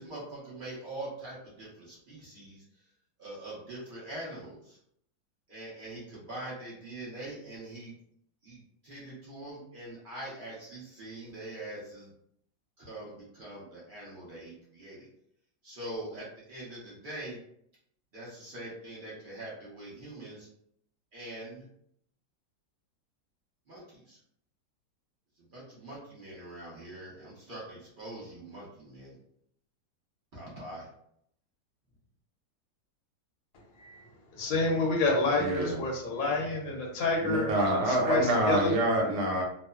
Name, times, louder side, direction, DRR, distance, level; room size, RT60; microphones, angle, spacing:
voice 1, 0.0-2.6 3.2-4.8 5.5-7.9 8.4-12.1 12.8-15.1 15.6-17.4 18.1-20.5 21.1-21.6 23.7-24.2 25.5-29.1 30.3-30.9, right 1 dB, 55° right, -7 dB, 0.5 m, -43 dB
voice 2, 34.3-38.7, left 3 dB, 70° left, -1 dB, 0.8 m, -29 dB
voice 3, 35.4-35.8 37.2-39.4, right 1 dB, 75° right, -1 dB, 1.3 m, -26 dB
3.0 x 2.0 x 2.2 m, 0.72 s
omnidirectional pair, 2.0 m